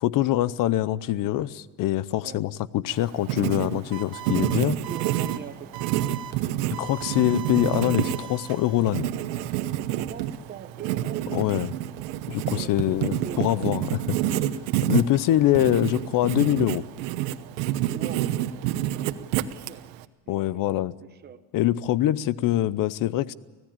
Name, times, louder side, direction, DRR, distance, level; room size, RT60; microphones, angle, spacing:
voice 1, 0.0-4.8 6.8-9.1 11.3-11.7 12.3-14.2 14.9-16.8 20.3-20.9 21.5-23.3, left 14 dB, 45° left, 19 dB, 0.7 m, -24 dB
Writing, 2.9-20.0, right 13 dB, 80° right, 1.1 m, -28 dB
sound 1, 3.9-4.5 4.8-5.4 5.7-6.3 6.7-9.1, right 11 dB, 50° right, 4.3 m, -39 dB
voice 2, 4.9-5.9 9.9-11.7 12.5-13.9 17.9-19.8 20.3-20.7 21.0-21.4, right 8 dB, 20° right, 8 dB, 1.0 m, -42 dB
25.0 x 17.0 x 8.9 m, 1.4 s
cardioid pair, 140°, 47 cm